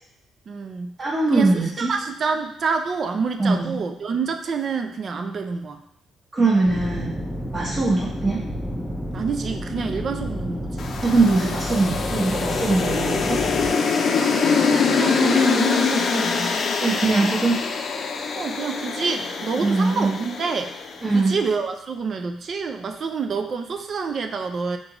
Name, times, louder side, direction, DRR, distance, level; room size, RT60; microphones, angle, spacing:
voice 1, 0.5-0.9 1.3-5.8 7.6-7.8 9.1-10.9 14.2-16.5 16.9-17.3 18.3-20.7 21.1-24.8, right 5 dB, 50° right, 6 dB, 0.4 m, -28 dB
voice 2, 1.0-1.9 3.4-3.8 6.3-7.2 7.5-8.4 11.0-13.4 16.8-17.6 19.6-20.1 21.0-21.3, right 3 dB, 35° right, -6 dB, 1.1 m, -21 dB
sound 1, 6.7-13.7, equal, 15° left, 0.7 m, -30 dB
sound 2, 10.8-21.1, left 5 dB, 55° left, 0.5 m, -24 dB
3.9 x 3.6 x 3.0 m, 0.77 s
cardioid pair, 90°, 0 cm